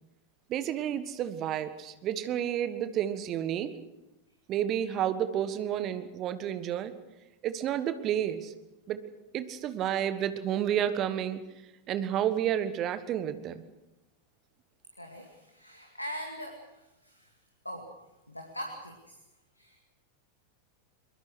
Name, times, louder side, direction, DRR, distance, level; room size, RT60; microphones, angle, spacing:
voice 1, 0.5-3.7 4.5-6.9 7.4-8.5 8.9-9.0 9.3-11.4 11.9-13.6, right 10 dB, 35° right, 12 dB, 1.4 m, -30 dB
voice 2, 15.0-17.3 17.6-17.9 18.3-19.2 19.6-19.8, equal, 85° left, 3 dB, 2.3 m, -42 dB
23.0 x 22.0 x 6.4 m, 0.97 s
figure-of-eight pair, 90°, 0 cm